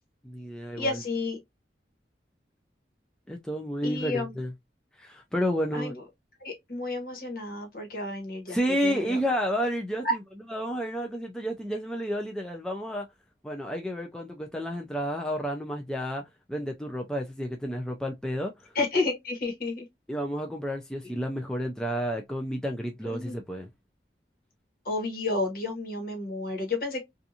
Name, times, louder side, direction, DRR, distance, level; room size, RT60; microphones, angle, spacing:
voice 1, 0.2-1.0 3.3-4.5 5.0-5.9 8.5-10.2 10.5-13.1 13.4-16.2 16.5-18.7 20.1-23.7, equal, 5° left, 0.3 m, -31 dB
voice 2, 0.7-1.4 3.8-4.3 5.7-6.0 6.4-8.6 8.8-9.2 10.0-10.1 18.7-19.8 23.0-23.3 24.8-27.0, left 2 dB, 55° left, 1.1 m, -31 dB
2.5 x 2.4 x 2.7 m
head